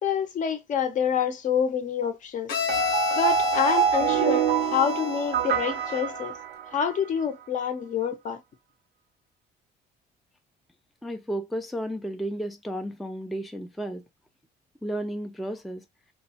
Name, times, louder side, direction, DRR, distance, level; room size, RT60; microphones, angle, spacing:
voice 1, 0.0-2.6 3.1-6.3 6.7-8.4, left 7 dB, 50° left, 0.6 m, -27 dB
Bowed string instrument, 2.5-6.2, left 7 dB, 80° left, 0.8 m, -31 dB
sound 1, 2.7-7.0, right 9 dB, 60° right, 0.5 m, -26 dB
voice 2, 11.0-14.0 14.8-15.8, right 1 dB, ahead, 0.3 m, -33 dB
3.0 x 2.1 x 2.7 m
cardioid pair, 110°, 17 cm